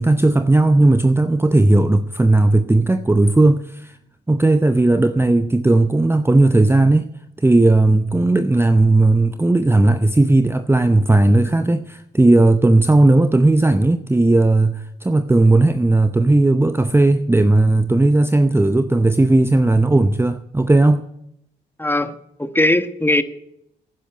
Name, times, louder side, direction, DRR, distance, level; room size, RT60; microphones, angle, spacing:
voice 1, 0.0-4.0 4.3-7.1 7.4-21.0, right 2 dB, 10° right, 0.7 m, -15 dB
voice 2, 21.8-22.1 22.4-23.2, left 1 dB, 10° left, 1.2 m, -18 dB
11.5 x 10.0 x 7.9 m
hypercardioid pair, 40°, 21 cm